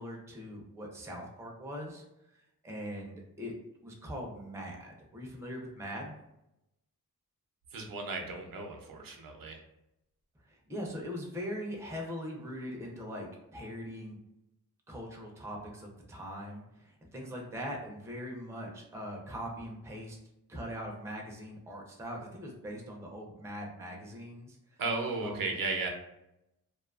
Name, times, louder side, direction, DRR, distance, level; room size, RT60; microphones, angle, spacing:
voice 1, 0.0-2.0 2.3-3.5 3.8-6.2 10.4-14.2 14.9-20.2 20.5-24.8 25.2-25.5, equal, 10° right, 0 dB, 0.4 m, -41 dB
voice 2, 7.7-9.6 24.8-25.9, right 3 dB, 70° right, 3 dB, 0.5 m, -35 dB
2.5 x 2.3 x 2.3 m, 0.87 s
wide cardioid pair, 145°, 35 cm